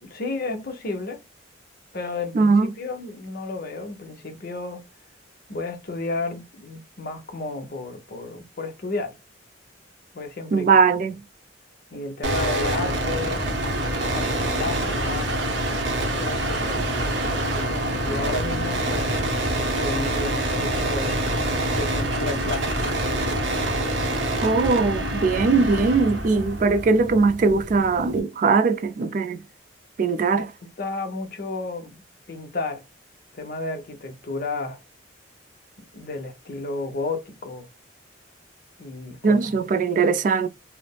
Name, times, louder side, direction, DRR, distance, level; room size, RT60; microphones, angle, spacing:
voice 1, 0.0-1.2 1.9-4.9 5.5-9.2 10.1-10.7 11.9-13.4 14.1-15.4 16.2-19.2 19.5-21.2 21.7-22.7 25.1-25.7 30.3-32.0 32.3-32.8 33.3-34.8 35.9-37.7 38.8-39.9, left 3 dB, 50° left, 0.7 m, -32 dB
voice 2, 2.3-2.7 10.5-11.2 24.4-29.4 30.0-30.4 39.2-40.5, right 4 dB, 45° right, 0.3 m, -20 dB
sound 1, 12.2-28.2, right 1 dB, 65° right, 0.8 m, -26 dB
3.2 x 2.0 x 2.2 m
head